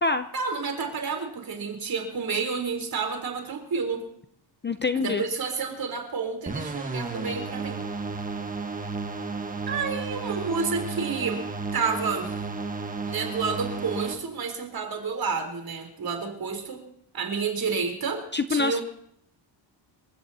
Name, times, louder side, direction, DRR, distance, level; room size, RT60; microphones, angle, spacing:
voice 1, 0.3-4.0 4.9-7.8 9.7-11.4 11.7-12.4 13.1-16.8 17.1-18.2 18.5-18.8, right 5 dB, 50° right, 4 dB, 3.8 m, -30 dB
voice 2, 4.6-5.2 18.3-18.8, left 4 dB, 25° left, 10 dB, 0.5 m, -25 dB
sound 1, 6.5-14.1, right 4 dB, 20° right, 1.3 m, -33 dB
27.5 x 15.5 x 2.8 m, 0.73 s
wide cardioid pair, 160°, 46 cm